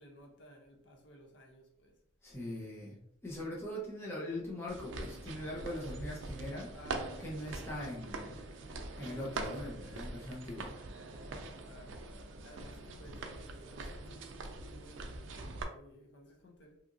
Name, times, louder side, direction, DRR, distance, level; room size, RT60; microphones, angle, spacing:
voice 1, 0.0-1.9 6.7-7.3 9.0-9.4 11.4-12.0 12.4-16.8, equal, 60° left, 0.6 m, -56 dB
voice 2, 2.2-3.0 3.2-6.7 7.2-8.4 9.0-10.8, left 1 dB, 10° left, 0.6 m, -41 dB
sound 1, 4.7-15.6, right 2 dB, 75° right, 0.4 m, -43 dB
2.8 x 2.5 x 2.4 m
head